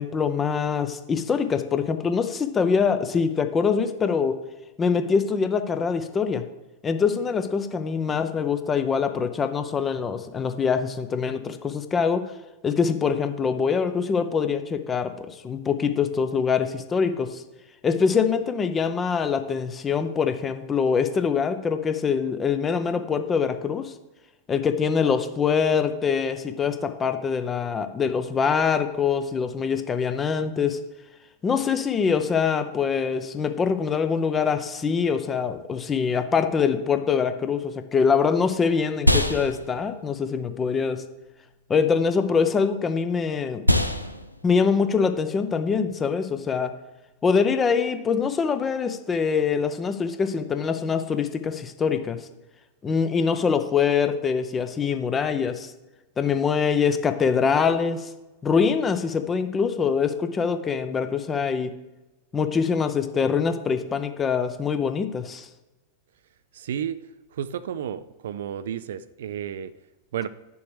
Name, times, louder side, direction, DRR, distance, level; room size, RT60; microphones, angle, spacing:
voice 1, 0.0-4.4 4.8-6.4 6.8-12.2 12.6-17.4 17.8-23.9 24.5-30.8 31.4-41.0 41.7-43.6 44.4-46.7 47.2-52.2 52.8-55.7 56.2-58.1 58.4-61.7 62.3-65.5, left 6 dB, 20° left, 9 dB, 0.7 m, -24 dB
sound 1, 37.7-47.3, equal, 90° left, 0.5 m, -29 dB
voice 2, 66.5-67.0 67.3-69.7 70.1-70.3, right 9 dB, 60° right, 15 dB, 0.3 m, -32 dB
10.5 x 7.0 x 3.3 m, 1.1 s
figure-of-eight pair, 90°, 0 cm